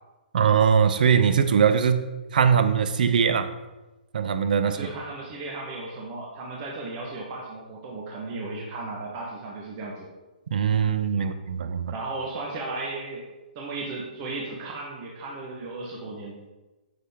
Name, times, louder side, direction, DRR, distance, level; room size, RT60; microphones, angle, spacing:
voice 1, 0.3-2.1 2.3-3.5 4.1-4.9 10.5-11.9, right 7 dB, 55° right, 11 dB, 0.6 m, -21 dB
voice 2, 4.6-10.1 11.2-11.3 11.9-13.3 13.5-16.4, right 3 dB, 25° right, -3 dB, 1.0 m, -35 dB
8.4 x 6.1 x 3.5 m, 1.1 s
hypercardioid pair, 170°, 5 cm